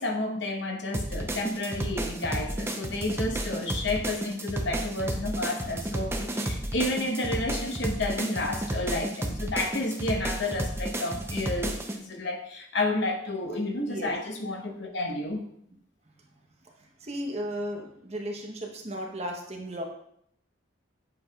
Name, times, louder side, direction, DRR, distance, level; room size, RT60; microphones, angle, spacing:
voice 1, 0.0-15.4, left 2 dB, 60° left, 2 dB, 0.9 m, -31 dB
sound 1, 0.9-12.0, right 1 dB, 10° right, 0.5 m, -32 dB
voice 2, 17.0-19.8, equal, 30° right, 1 dB, 0.8 m, -35 dB
7.6 x 5.5 x 2.3 m, 0.70 s
head